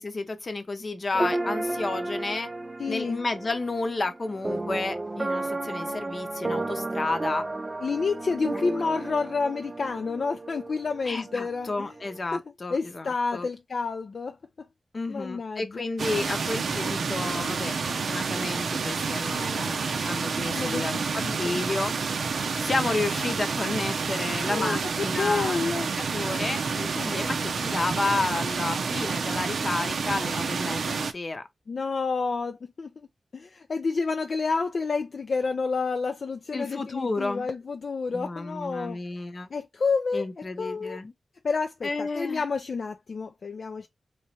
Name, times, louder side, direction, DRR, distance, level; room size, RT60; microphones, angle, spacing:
voice 1, 0.0-2.5 2.9-7.4 11.1-13.5 14.9-21.9 22.6-25.6 26.1-31.4 36.5-37.5 38.1-39.5 40.1-41.1 41.8-42.4, left 3 dB, 45° left, 0.7 m, -31 dB
sound 1, 1.1-12.2, right 2 dB, 25° right, 0.4 m, -33 dB
voice 2, 2.8-3.2 7.8-11.9 12.3-12.4 12.7-14.4 15.1-15.8 20.5-21.6 24.5-25.9 31.7-33.1 33.3-39.0 39.5-40.3 40.6-41.0 41.4-43.9, left 4 dB, 60° left, 0.4 m, -29 dB
sound 2, 16.0-31.1, right 5 dB, 75° right, 0.5 m, -29 dB
3.4 x 3.1 x 2.7 m
wide cardioid pair, 85°, 0 cm